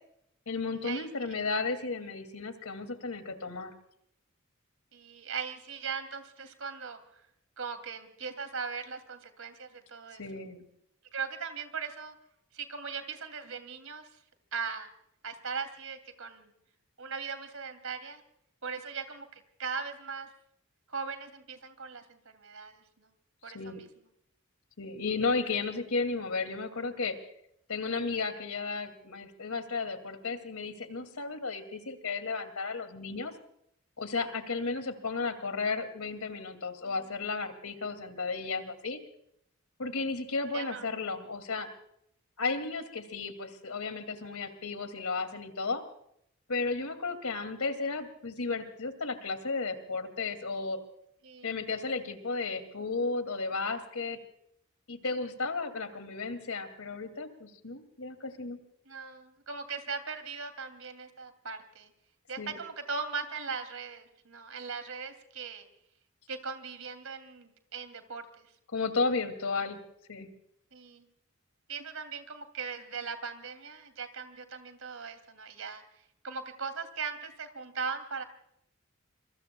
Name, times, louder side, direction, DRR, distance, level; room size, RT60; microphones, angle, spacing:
voice 1, 0.5-3.7 10.2-10.6 23.4-23.8 24.8-27.2 27.7-33.3 34.0-39.0 39.8-41.7 42.4-45.8 46.5-50.8 51.4-54.2 54.9-58.6 62.4-62.6 68.7-69.8 70.1-70.3, left 4 dB, 80° left, 9 dB, 2.5 m, -34 dB
voice 2, 4.9-7.2 7.6-10.2 11.1-12.1 12.5-14.2 14.5-14.9 15.2-16.5 17.0-18.2 18.6-20.3 20.9-23.1 23.4-23.9 36.8-37.0 40.5-40.9 51.2-51.5 58.9-61.9 62.3-65.6 66.3-68.3 70.7-71.1 71.7-75.8 76.2-78.2, right 5 dB, 75° right, 8 dB, 2.8 m, -39 dB
26.5 x 24.0 x 2.3 m, 0.72 s
head